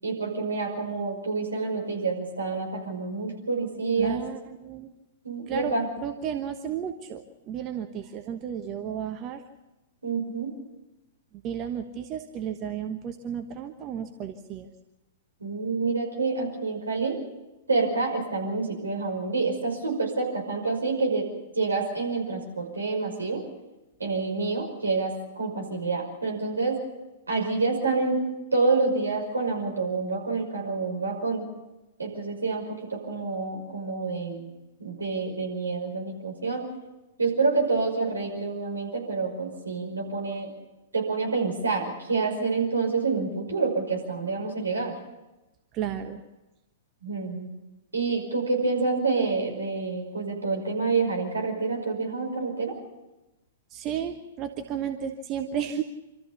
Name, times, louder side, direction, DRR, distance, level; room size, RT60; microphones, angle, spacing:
voice 1, 0.0-4.2 5.2-5.9 10.0-10.6 15.4-17.2 17.7-21.3 21.6-23.4 24.0-26.8 27.3-28.2 28.5-31.5 32.0-34.5 34.8-36.6 37.2-40.5 40.9-44.9 47.0-47.5 47.9-52.8, right 4 dB, 75° right, 0 dB, 5.6 m, -28 dB
voice 2, 4.0-4.9 5.5-9.4 11.4-14.7 24.1-24.2 45.7-46.2 53.7-55.8, right 8 dB, 30° right, 6 dB, 1.2 m, -33 dB
26.0 x 14.0 x 7.2 m, 1.0 s
figure-of-eight pair, 105°, 0 cm